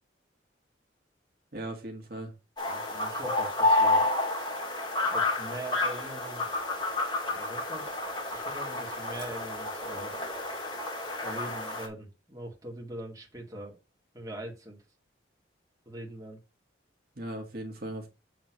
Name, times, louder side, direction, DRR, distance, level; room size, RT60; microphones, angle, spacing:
voice 1, 1.5-2.3 17.2-18.1, right 1 dB, 50° right, 1.8 m, -38 dB
sound 1, 2.6-11.9, left 2 dB, 25° left, 2.5 m, -30 dB
voice 2, 2.7-4.0 5.0-6.5 7.2-8.0 8.3-10.2 11.2-13.8 14.1-14.8 15.9-16.4, right 1 dB, 20° right, 2.2 m, -42 dB
8.1 x 3.7 x 6.0 m
head